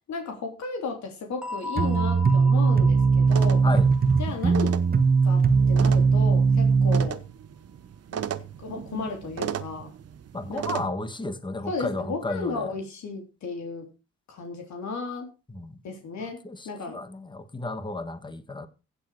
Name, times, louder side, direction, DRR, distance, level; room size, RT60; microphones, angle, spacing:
voice 1, 0.1-3.6 4.2-4.8 5.2-7.2 8.1-8.3 8.6-9.9 10.5-10.8 11.7-13.9 14.3-15.3 15.8-17.0, left 4 dB, 65° left, 3.2 m, -34 dB
sound 1, 1.4-6.0, left 2 dB, ahead, 2.0 m, -39 dB
sound 2, 1.8-7.1, right 5 dB, 30° right, 1.3 m, -20 dB
sound 3, 3.3-10.9, right 9 dB, 55° right, 1.1 m, -36 dB
voice 2, 10.3-12.7 15.5-15.8 16.4-18.7, left 2 dB, 15° left, 1.6 m, -33 dB
15.5 x 7.6 x 4.7 m
cardioid pair, 90°, 30 cm